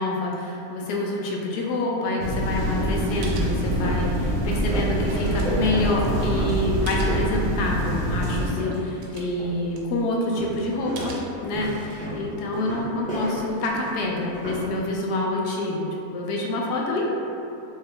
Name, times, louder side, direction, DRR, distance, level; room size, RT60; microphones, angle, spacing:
voice 1, 0.0-11.2 11.4-17.0, left 1 dB, 80° left, -1 dB, 1.1 m, -27 dB
sound 1, 2.2-8.5, equal, 50° right, 0.5 m, -25 dB
sound 2, 3.0-3.1 3.5-9.0 9.4-9.8 10.4-14.7, equal, 10° left, 0.3 m, -34 dB
sound 3, 3.2-4.2 4.6-7.3 7.7-7.9 8.3-8.4 8.6-10.4 11.0-11.9 12.4-14.6, right 3 dB, 70° right, 0.9 m, -44 dB
3.3 x 2.8 x 3.3 m, 2.7 s
omnidirectional pair, 1.7 m